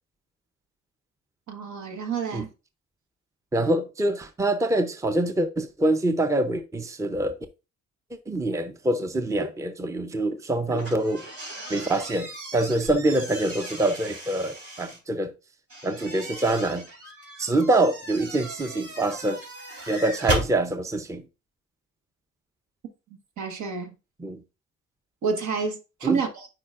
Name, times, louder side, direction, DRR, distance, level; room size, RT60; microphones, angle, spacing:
voice 1, 1.5-2.5 23.4-23.9 25.2-26.5, right 5 dB, 70° right, 1.4 m, -28 dB
voice 2, 3.5-7.3 8.3-11.2 11.7-15.3 15.8-16.9 17.4-19.4 19.9-21.2 24.2-24.4 26.0-26.2, right 1 dB, 10° right, 0.6 m, -25 dB
sound 1, 10.7-15.0 15.7-20.5, right 1 dB, 50° right, 3.8 m, -36 dB
8.6 x 4.8 x 2.4 m
cardioid pair, 90°, 30 cm